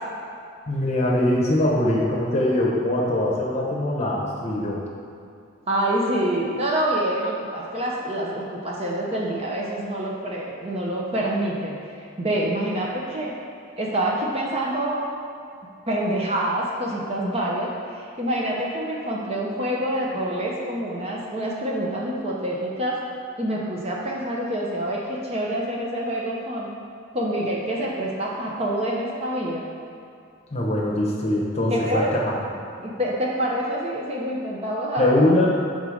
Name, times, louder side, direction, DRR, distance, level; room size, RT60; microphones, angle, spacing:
voice 1, 0.7-4.8 30.5-32.4 35.0-35.5, left 1 dB, 30° left, -3 dB, 0.8 m, -22 dB
voice 2, 5.7-11.8 12.2-13.3 13.8-15.0 15.9-23.0 23.4-26.7 27.1-29.7 31.7-32.1 32.8-35.2, right 1 dB, 25° right, -3 dB, 0.6 m, -26 dB
5.5 x 3.8 x 4.9 m, 2.5 s
head